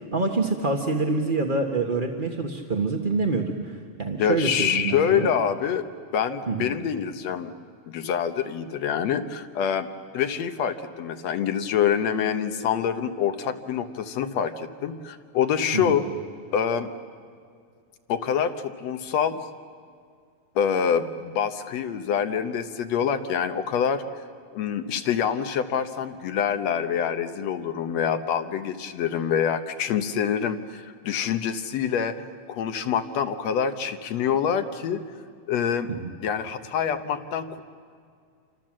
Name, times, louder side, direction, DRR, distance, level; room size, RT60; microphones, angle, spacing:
voice 1, 0.1-5.3 6.5-6.7 15.7-16.0 35.9-36.1, right 3 dB, 35° right, 2 dB, 0.7 m, -26 dB
voice 2, 4.2-5.9 6.1-7.5 7.9-9.9 10.1-16.1 16.5-16.9 18.1-19.5 20.6-24.0 24.5-32.2 32.5-35.0 35.5-35.9 36.2-37.6, left 8 dB, 65° left, 8 dB, 2.1 m, -26 dB
28.5 x 26.0 x 7.6 m, 2.1 s
omnidirectional pair, 3.4 m